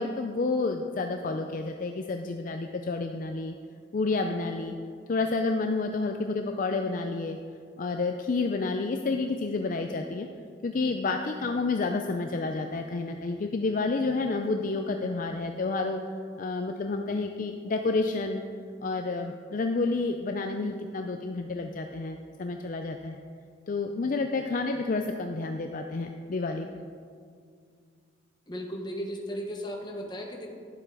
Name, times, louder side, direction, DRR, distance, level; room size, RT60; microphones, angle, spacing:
voice 1, 0.0-3.5 3.9-4.7 5.1-7.4 7.8-10.3 10.6-16.0 16.4-18.4 18.8-23.2 23.7-26.9, left 3 dB, 45° left, 5 dB, 0.4 m, -30 dB
voice 2, 28.5-30.5, equal, 25° left, 1 dB, 1.3 m, -36 dB
11.0 x 7.6 x 4.8 m, 2.2 s
head